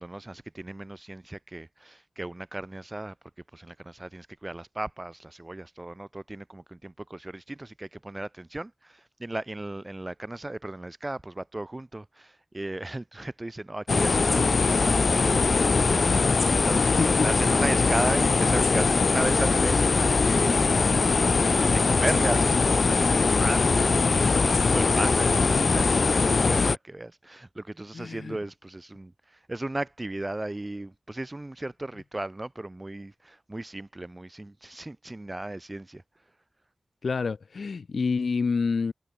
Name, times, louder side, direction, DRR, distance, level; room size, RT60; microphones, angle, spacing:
voice 1, 0.0-3.2 3.5-21.2 21.6-36.0, right 2 dB, 25° right, 2.4 m, -35 dB
sound 1, 13.9-26.8, left 4 dB, 65° left, 1.9 m, -22 dB
voice 2, 27.9-28.4 37.0-38.9, left 5 dB, 80° left, 4.5 m, -28 dB
wide cardioid pair, 85°, 0 cm